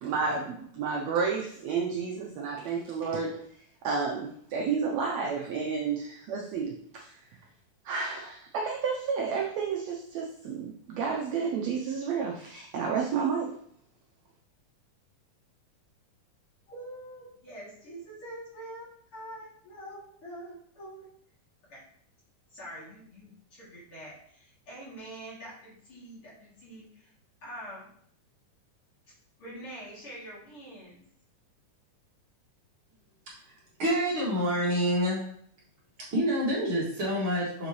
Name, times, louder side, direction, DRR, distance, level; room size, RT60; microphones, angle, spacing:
voice 1, 0.0-3.3 3.8-7.1 7.9-13.5, right 5 dB, 70° right, 0 dB, 1.7 m, -31 dB
voice 2, 16.7-18.9 19.1-21.1 21.6-21.8 22.5-27.1 27.4-27.9 29.4-31.0, right 1 dB, 45° left, -7 dB, 3.3 m, -45 dB
voice 3, 33.3-35.2 36.1-37.7, equal, 45° right, -6 dB, 2.6 m, -28 dB
7.0 x 6.8 x 3.1 m, 0.65 s
omnidirectional pair, 3.7 m